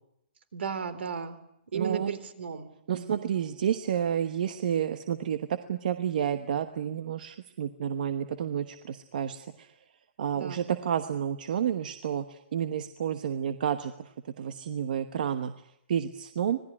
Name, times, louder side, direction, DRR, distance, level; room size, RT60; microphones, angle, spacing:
voice 1, 0.5-1.4 1.7-2.7 2.9-3.3 10.3-10.7, right 6 dB, 65° right, 13 dB, 3.7 m, -35 dB
voice 2, 1.7-2.1 2.9-9.7 10.2-15.5 15.9-16.6, right 9 dB, 45° right, 10 dB, 1.2 m, -30 dB
26.0 x 19.0 x 9.9 m, 0.80 s
hypercardioid pair, 175°, 6 cm